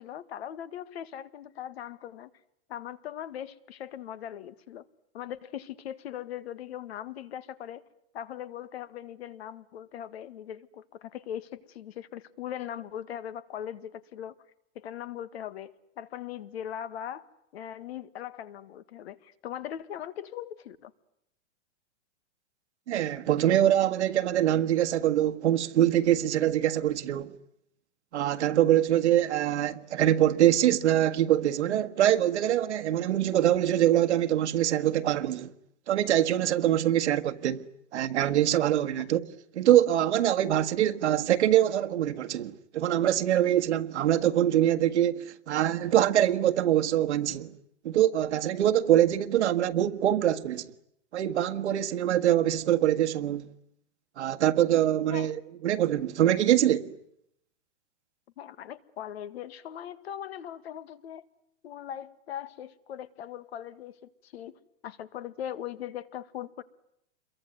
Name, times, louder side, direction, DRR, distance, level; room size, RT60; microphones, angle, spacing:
voice 1, 0.0-2.3 2.7-4.9 5.1-7.8 8.1-14.4 14.8-17.3 17.5-20.9 55.1-55.3 58.4-61.2 61.6-66.6, left 10 dB, 60° left, 1.8 m, -40 dB
voice 2, 22.9-27.3 28.1-35.5 35.9-37.7 37.9-39.2 39.6-47.5 47.8-50.7 51.1-53.5 54.2-56.9, right 12 dB, 75° right, 1.7 m, -24 dB
28.0 x 23.0 x 9.4 m
supercardioid pair, 165°, 35 cm